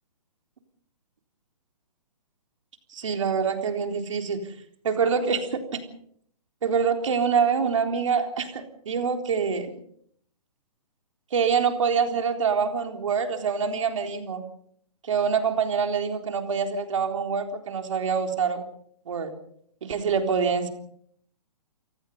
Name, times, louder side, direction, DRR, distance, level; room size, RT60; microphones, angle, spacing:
voice 1, 2.9-4.4 4.8-5.8 6.6-9.7 11.3-14.4 15.0-18.6 19.1-19.3 19.8-20.7, right 6 dB, 50° right, 4 dB, 3.8 m, -25 dB
29.5 x 18.5 x 5.5 m, 0.66 s
hypercardioid pair, 175°, 20 cm